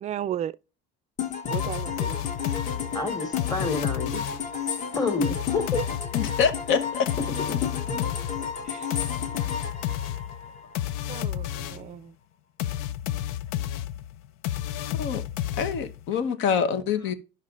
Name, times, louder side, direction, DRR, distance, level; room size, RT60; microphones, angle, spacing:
voice 1, 0.0-0.6 1.5-2.2 8.7-8.9 11.1-12.1, right 11 dB, 35° right, 0.4 m, -34 dB
sound 1, 1.2-10.9, left 6 dB, 35° left, 1.3 m, -33 dB
sound 2, 1.5-4.6 5.2-12.0 12.6-16.1, left 12 dB, 85° left, 0.6 m, -31 dB
voice 2, 2.9-4.2 5.0-5.8 7.4-7.6 7.9-8.0, left 4 dB, 15° left, 1.7 m, -28 dB
voice 3, 6.1-7.1 15.0-15.2 15.6-17.1, left 6 dB, 65° left, 1.2 m, -25 dB
12.0 x 5.7 x 2.5 m
cardioid pair, 135°, 21 cm